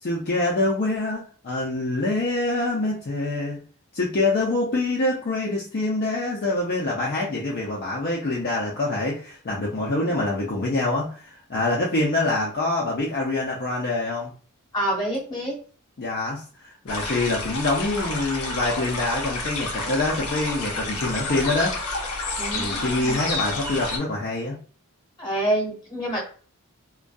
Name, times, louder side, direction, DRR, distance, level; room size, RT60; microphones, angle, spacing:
voice 1, 0.0-3.6 3.9-14.3 16.0-21.8 22.5-24.6, left 2 dB, 45° left, -3 dB, 0.5 m, -25 dB
voice 2, 14.7-15.6 22.4-23.2 25.2-26.2, right 1 dB, 20° left, -4 dB, 1.0 m, -27 dB
sound 1, 16.9-24.0, left 2 dB, 85° left, 0.7 m, -30 dB
2.5 x 2.2 x 2.3 m, 0.42 s
head